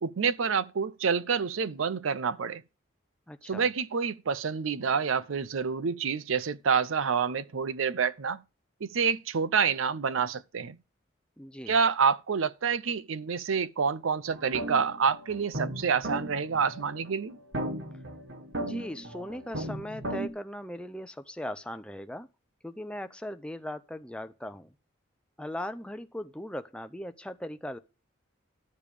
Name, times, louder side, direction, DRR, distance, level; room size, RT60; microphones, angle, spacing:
voice 1, 0.0-2.6 3.5-8.4 8.8-10.8 11.7-17.4, right 6 dB, 85° right, 0.5 m, -28 dB
voice 2, 3.3-3.7 11.4-11.7 18.6-22.3 22.6-24.7 25.4-27.8, left 1 dB, 5° left, 0.5 m, -39 dB
sound 1, 14.3-20.3, right 1 dB, 60° right, 1.7 m, -37 dB
12.0 x 7.0 x 4.9 m
head